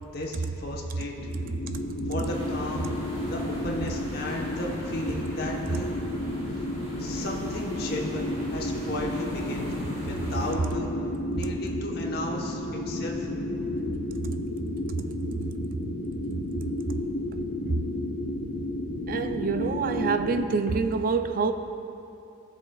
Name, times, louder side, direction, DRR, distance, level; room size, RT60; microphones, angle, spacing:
voice 1, 0.1-1.1 2.1-2.9 3.3-5.9 7.0-9.7 10.0-10.9 11.3-13.3, left 1 dB, 50° left, -1 dB, 1.0 m, -34 dB
sound 1, 1.2-20.5, left 1 dB, 85° left, 0.8 m, -32 dB
voice 2, 1.7-2.0 2.8-2.9 14.2-14.4 14.8-15.1 15.4-15.5 16.6-17.0 17.7-17.9 19.1-21.5, right 4 dB, 45° right, 8 dB, 0.3 m, -28 dB
sound 2, 2.2-10.5, equal, 25° right, 2.2 m, -41 dB
18.5 x 7.1 x 2.3 m, 2.8 s
head